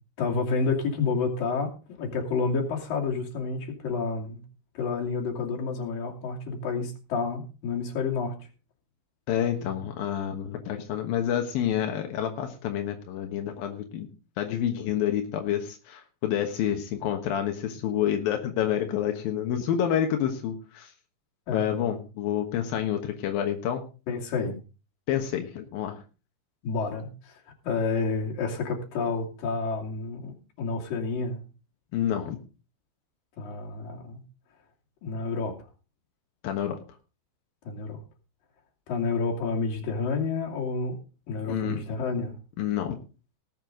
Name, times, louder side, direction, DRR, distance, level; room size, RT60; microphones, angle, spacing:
voice 1, 0.2-1.7 2.0-4.4 4.7-8.3 21.5-21.8 24.1-24.6 26.6-31.4 33.4-34.2 35.0-35.6 37.7-38.0 38.9-41.0 41.3-42.4, left 4 dB, 50° left, 0 dB, 3.9 m, -29 dB
voice 2, 9.3-14.1 14.4-20.9 21.5-23.8 25.1-26.0 31.9-32.4 36.4-36.8 41.5-41.8 42.6-43.0, left 10 dB, 70° left, 4 dB, 2.3 m, -28 dB
19.0 x 7.7 x 3.8 m, 0.33 s
omnidirectional pair, 5.8 m